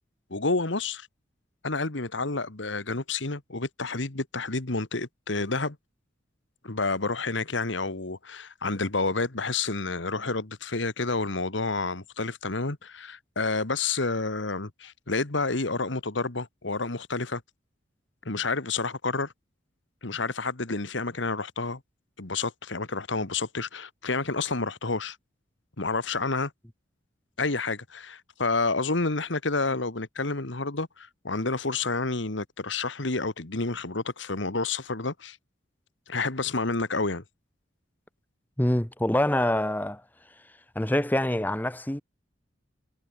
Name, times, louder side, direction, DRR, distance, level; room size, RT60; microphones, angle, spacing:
voice 1, 0.3-1.1 1.6-5.8 6.6-17.4 18.3-19.3 20.0-21.8 22.2-25.2 25.8-26.5 27.4-35.4 36.1-37.2, left 3 dB, 70° left, 1.8 m, -29 dB
voice 2, 38.6-40.0 40.7-42.0, left 1 dB, 10° left, 1.0 m, -25 dB
head